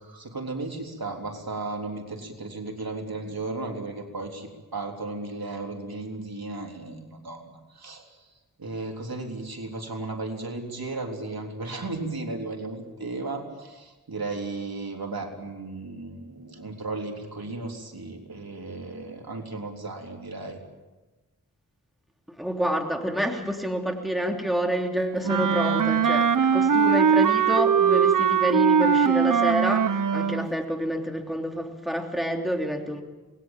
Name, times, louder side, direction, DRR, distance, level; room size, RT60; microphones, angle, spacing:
voice 1, 0.0-8.3 8.6-20.6 25.3-25.6, right 3 dB, 85° right, 2 dB, 3.6 m, -35 dB
voice 2, 22.4-33.0, equal, ahead, 3 dB, 3.2 m, -28 dB
Wind instrument woodwind instrument, 25.2-30.5, right 7 dB, 60° right, 0.8 m, -21 dB
26.5 x 20.5 x 7.4 m, 1.2 s
wide cardioid pair, 60°, 36 cm